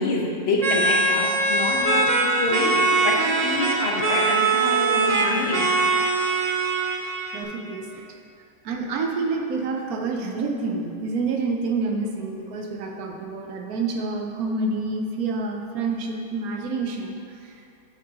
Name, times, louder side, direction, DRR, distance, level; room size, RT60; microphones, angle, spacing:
voice 1, 0.0-5.7, left 2 dB, 50° left, -2 dB, 1.2 m, -27 dB
sound 1, 0.6-7.4, right 3 dB, 55° right, 0.4 m, -22 dB
voice 2, 7.3-8.1 8.6-17.2 17.4-17.6, right 3 dB, 85° right, 2 dB, 1.2 m, -28 dB
8.3 x 7.4 x 2.9 m, 2.7 s
omnidirectional pair, 1.5 m